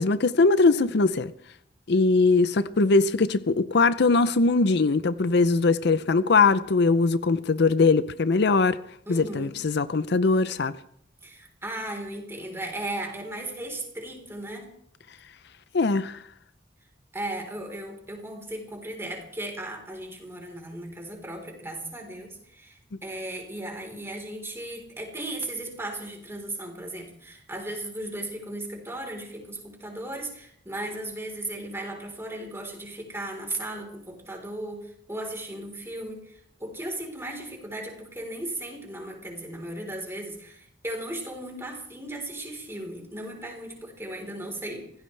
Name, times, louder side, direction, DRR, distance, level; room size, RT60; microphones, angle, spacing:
voice 1, 0.0-1.3 1.9-8.8 9.1-10.7 15.7-16.2, left 3 dB, 65° left, 0.6 m, -21 dB
voice 2, 9.1-9.5 11.2-14.7 17.1-44.9, right 1 dB, 15° right, 4.0 m, -36 dB
25.5 x 16.5 x 3.4 m
head